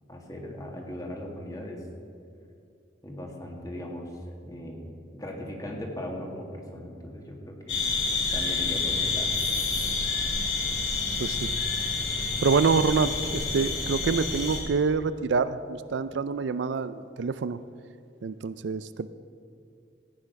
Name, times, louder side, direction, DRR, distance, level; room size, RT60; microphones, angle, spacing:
voice 1, 0.1-1.8 3.0-4.1 4.4-7.8 8.3-9.3, left 1 dB, 20° left, 1 dB, 1.8 m, -38 dB
sound 1, 7.7-14.6, left 4 dB, 85° left, 3.4 m, -28 dB
voice 2, 11.2-11.5 12.4-17.6 18.2-19.1, right 5 dB, 70° right, 13 dB, 0.4 m, -26 dB
15.0 x 9.0 x 5.9 m, 2.4 s
head